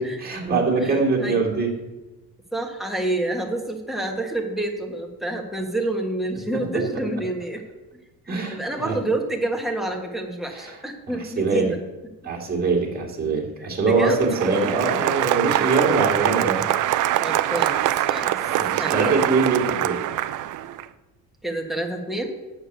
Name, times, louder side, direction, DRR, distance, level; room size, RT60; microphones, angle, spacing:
voice 1, 0.0-1.7 8.3-8.9 10.5-10.8 11.4-11.7 12.2-16.6 18.5-20.0, right 4 dB, 25° right, -1 dB, 2.2 m, -23 dB
voice 2, 2.5-7.6 8.3-11.8 13.6-14.3 16.5-16.6 17.2-17.8 18.1-18.3 18.8-19.1 21.4-22.3, right 1 dB, ahead, 1 dB, 1.4 m, -28 dB
Applause, 13.9-20.8, right 13 dB, 60° right, 0.6 m, -24 dB
8.7 x 6.8 x 8.0 m, 1.1 s
cardioid pair, 150°, 35 cm